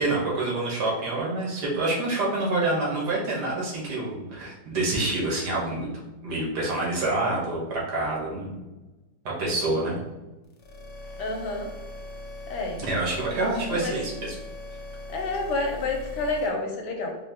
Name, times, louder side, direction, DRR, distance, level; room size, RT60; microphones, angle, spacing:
voice 1, 0.0-8.6 9.4-10.0 12.8-14.3, right 2 dB, 80° right, -4 dB, 1.8 m, -27 dB
sound 1, 10.5-16.5, left 1 dB, 60° left, 0.8 m, -40 dB
voice 2, 11.2-11.7 12.5-12.8 13.7-13.9 15.1-17.2, left 2 dB, 85° left, 2 dB, 1.3 m, -29 dB
4.4 x 2.3 x 3.4 m, 1.1 s
omnidirectional pair, 1.8 m